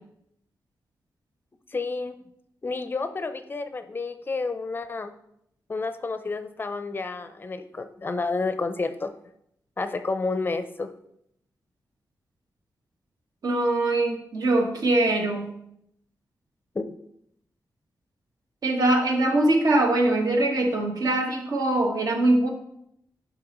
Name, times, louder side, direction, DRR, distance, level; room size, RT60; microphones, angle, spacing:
voice 1, 1.7-2.2 2.6-5.1 5.7-9.1 9.8-10.9 16.7-17.0, left 3 dB, 30° left, 9 dB, 0.5 m, -30 dB
voice 2, 13.4-15.5 18.6-22.5, right 2 dB, 65° right, 2 dB, 1.4 m, -22 dB
11.0 x 5.5 x 3.0 m, 0.76 s
wide cardioid pair, 145°, 7 cm